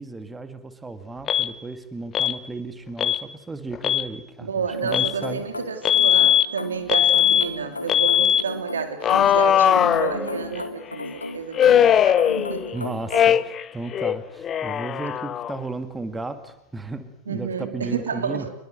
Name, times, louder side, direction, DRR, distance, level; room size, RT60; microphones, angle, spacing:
voice 1, 0.0-4.5 4.8-5.5 12.7-18.5, right 3 dB, 10° right, 9 dB, 2.2 m, -34 dB
Alarm, 1.3-1.5 2.1-2.4 3.0-3.2 3.7-4.1 4.9-5.1 5.8-6.5 6.9-7.5 7.9-8.4 9.0-10.6 11.6-12.8 13.1-13.7 13.9-15.6, left 10 dB, 25° left, 0.9 m, -19 dB
voice 2, 4.4-12.8 17.3-18.5, right 6 dB, 70° right, 7 dB, 2.9 m, -31 dB
Glass Car, 4.7-13.4, left 3 dB, 80° left, 2.3 m, -35 dB
26.5 x 21.5 x 7.9 m, 0.89 s
figure-of-eight pair, 90°, 0 cm